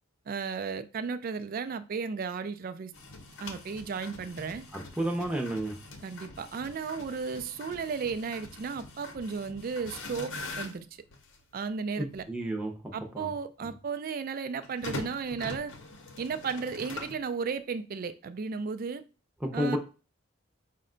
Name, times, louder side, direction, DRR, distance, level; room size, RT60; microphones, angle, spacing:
voice 1, 0.3-2.9 3.4-4.6 6.0-10.9 11.5-12.3 12.9-15.7 16.2-19.0 19.5-19.8, right 5 dB, 40° right, 0.3 m, -34 dB
sound 1, 2.9-11.4 12.1-12.2 14.6-17.3, left 2 dB, 60° left, 0.7 m, -43 dB
voice 2, 5.0-5.7 12.0-12.7 13.1-13.3 19.4-19.8, right 1 dB, 5° right, 0.6 m, -30 dB
5.2 x 2.2 x 3.7 m
head